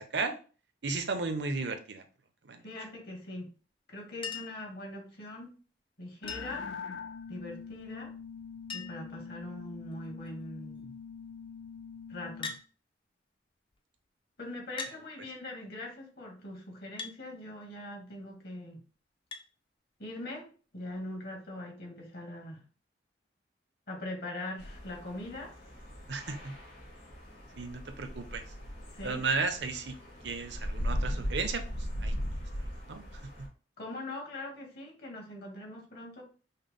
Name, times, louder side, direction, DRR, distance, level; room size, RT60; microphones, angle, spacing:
voice 1, 0.8-2.0 2.4-2.6 26.1-26.5 27.6-28.4 29.0-29.9 30.2-31.6 32.0-32.1 32.9-33.0, right 4 dB, 65° right, 8 dB, 0.7 m, -33 dB
voice 2, 2.6-3.5 3.9-5.5 6.0-6.7 7.3-8.1 8.7-11.0 12.1-12.6 14.4-18.8 20.0-22.6 23.9-25.5 28.9-29.3 33.8-36.2, left 1 dB, 55° left, 1 dB, 1.4 m, -42 dB
Chink clink, 4.2-4.7 6.3-6.7 8.1-8.2 8.4-8.5 8.7-9.1 9.9-10.3 12.4-12.7 13.7-13.8 14.8-15.0 17.0-17.2 19.3-19.5 20.9-21.0, left 5 dB, 30° left, 0.4 m, -40 dB
sound 1, 6.2-12.6, left 6 dB, 90° left, 0.5 m, -44 dB
sound 2, 24.6-33.5, equal, 70° left, 2.1 m, -38 dB
5.6 x 2.1 x 3.5 m, 0.37 s
head